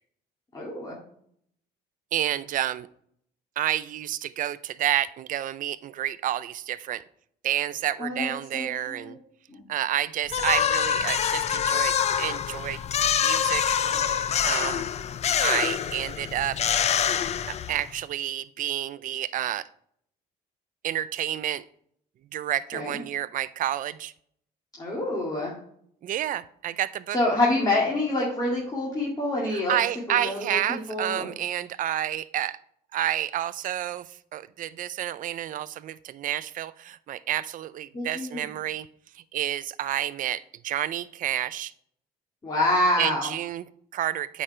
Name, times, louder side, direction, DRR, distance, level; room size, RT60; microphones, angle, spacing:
voice 1, 0.5-1.0 8.0-9.1 9.5-9.6 22.7-23.0 24.8-25.5 27.1-29.7 30.1-31.3 37.9-38.5 42.4-43.3, left 1 dB, 25° left, -4 dB, 2.2 m, -27 dB
voice 2, 2.1-2.9 3.6-7.0 7.4-9.2 9.7-12.8 13.2-13.8 14.4-14.9 15.4-16.6 17.5-19.6 20.8-21.6 22.3-24.1 26.0-27.2 29.5-32.6 32.9-38.9 39.1-41.7 43.0-44.4, right 12 dB, 50° right, 16 dB, 0.5 m, -29 dB
sound 1, 10.3-18.0, left 8 dB, 40° left, 0.5 m, -25 dB
8.4 x 5.2 x 3.3 m, 0.67 s
cardioid pair, 110°, 17 cm